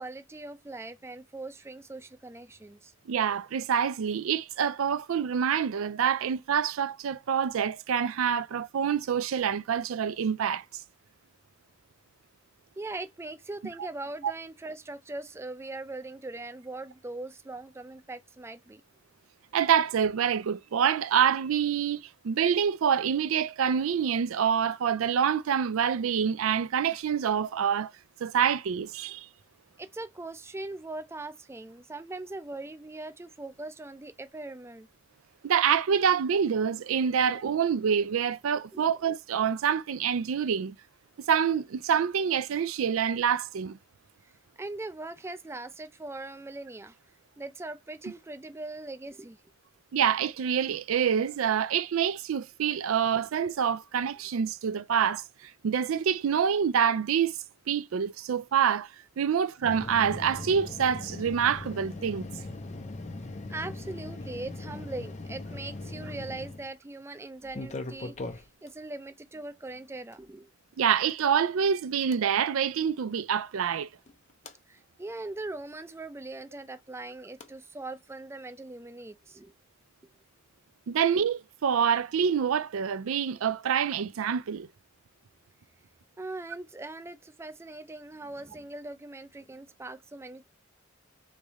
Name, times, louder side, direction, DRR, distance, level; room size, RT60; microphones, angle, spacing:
voice 1, 0.0-2.9 12.8-18.8 29.8-34.9 38.7-38.9 44.2-44.3 44.6-47.0 47.4-49.4 63.5-70.5 74.7-79.5 86.2-90.4, right 2 dB, 15° right, 0.4 m, -40 dB
voice 2, 3.1-10.6 19.5-27.9 28.2-29.3 35.4-40.7 41.3-43.8 49.9-57.3 57.7-58.9 59.2-62.3 70.8-73.9 80.9-84.7, right 7 dB, 80° right, 0.4 m, -26 dB
sound 1, 59.6-66.7 67.4-68.7 70.1-70.2 72.1-72.2 74.1-74.5 77.4-77.5, left 2 dB, 35° left, 0.6 m, -40 dB
3.5 x 3.3 x 4.1 m
head